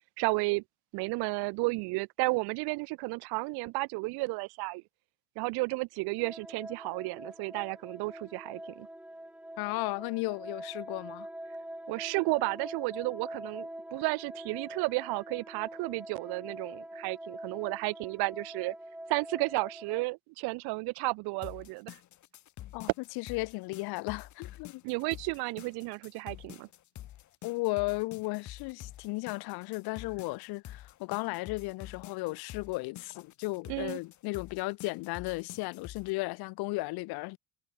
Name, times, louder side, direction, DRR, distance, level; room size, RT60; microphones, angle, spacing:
voice 1, 0.2-0.6 0.9-4.8 5.4-8.9 11.9-18.7 19.1-21.9 24.8-26.7 33.7-34.0, right 26 dB, 75° right, 2.0 m, -33 dB
sound 1, 6.2-20.1, right 1 dB, 5° right, 6.8 m, -44 dB
voice 2, 9.6-11.3 22.7-22.9 23.2-24.8 27.4-37.4, left 24 dB, 75° left, 3.9 m, -35 dB
sound 2, 21.4-36.1, left 13 dB, 50° left, 7.3 m, -48 dB
cardioid pair, 150°, 38 cm